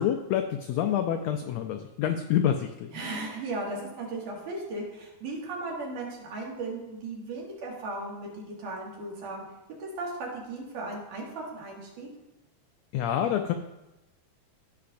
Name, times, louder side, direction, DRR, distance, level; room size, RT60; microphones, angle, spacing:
voice 1, 0.0-2.9 12.9-13.5, left 10 dB, 90° left, 6 dB, 1.5 m, -27 dB
voice 2, 2.9-9.4 9.8-12.1, right 2 dB, 90° right, -3 dB, 3.5 m, -36 dB
15.5 x 5.9 x 2.6 m, 0.97 s
omnidirectional pair, 3.6 m